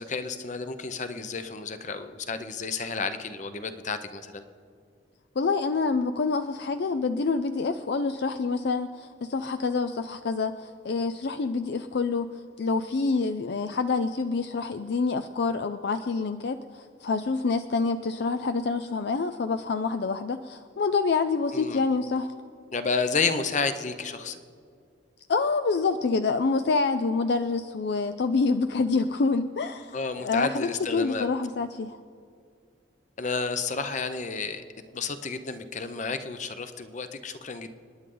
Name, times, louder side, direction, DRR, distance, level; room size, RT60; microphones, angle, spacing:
voice 1, 0.0-4.4 21.5-21.8 22.7-24.4 29.9-31.3 33.2-34.6 34.9-37.7, left 4 dB, 40° left, 10 dB, 0.8 m, -31 dB
voice 2, 5.4-12.3 12.6-22.3 25.3-32.0, left 4 dB, 60° left, 10 dB, 0.4 m, -27 dB
28.5 x 9.9 x 3.9 m, 2.2 s
head